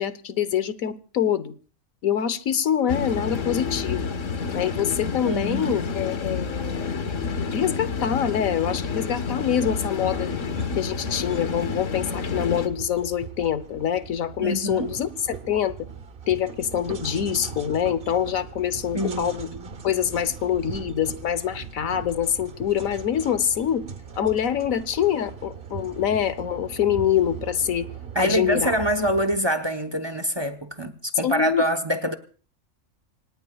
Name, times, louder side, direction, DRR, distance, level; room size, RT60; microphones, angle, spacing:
voice 1, 0.0-1.5 2.0-4.0 4.5-6.9 7.5-10.3 10.7-15.7 16.3-19.5 19.8-23.9 24.2-27.9 28.2-28.7 31.2-31.6, left 9 dB, 85° left, 1.3 m, -25 dB
sound 1, 2.9-12.7, left 5 dB, 65° left, 1.6 m, -29 dB
voice 2, 5.2-5.8 14.4-14.9 18.9-19.7 28.1-32.1, equal, 20° right, 0.9 m, -25 dB
sound 2, 10.2-29.4, right 6 dB, 45° right, 1.2 m, -40 dB
26.0 x 19.0 x 2.3 m
omnidirectional pair, 1.4 m